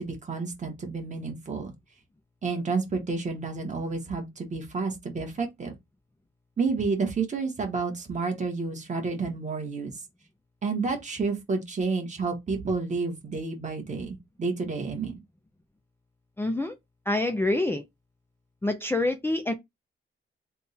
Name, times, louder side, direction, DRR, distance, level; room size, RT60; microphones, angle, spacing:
voice 1, 0.0-1.7 2.4-5.7 6.6-9.9 10.6-15.2, right 4 dB, 35° right, 1.2 m, -30 dB
voice 2, 16.4-16.8 17.1-17.8 18.6-19.5, left 2 dB, 10° left, 0.4 m, -26 dB
3.5 x 2.2 x 4.1 m
wide cardioid pair, 140°, 21 cm